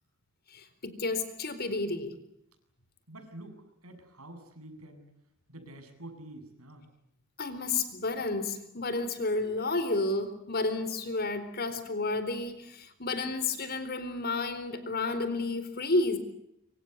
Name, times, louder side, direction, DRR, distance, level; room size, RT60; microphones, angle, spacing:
voice 1, 0.5-2.1 7.4-16.2, left 2 dB, 45° left, 11 dB, 4.2 m, -31 dB
voice 2, 3.1-3.6 3.8-5.0 5.5-6.8, right 1 dB, 75° right, 6 dB, 7.8 m, -47 dB
26.0 x 25.0 x 8.2 m, 0.79 s
head